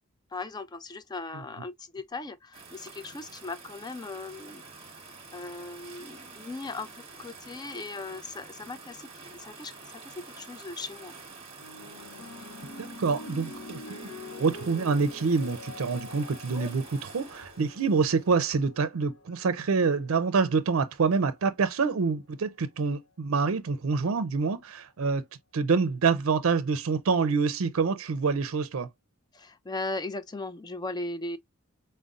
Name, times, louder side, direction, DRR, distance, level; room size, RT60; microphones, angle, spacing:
voice 1, 0.3-4.6 5.0-11.1 29.3-31.4, left 3 dB, 20° left, 0.4 m, -38 dB
sound 1, 2.5-18.4, right 3 dB, 30° right, 1.1 m, -47 dB
sound 2, 11.6-20.2 21.1-21.4, left 2 dB, 75° left, 0.7 m, -46 dB
voice 2, 12.8-14.1 14.4-25.2 25.5-28.9, right 4 dB, 80° right, 0.5 m, -26 dB
5.1 x 2.1 x 2.4 m
head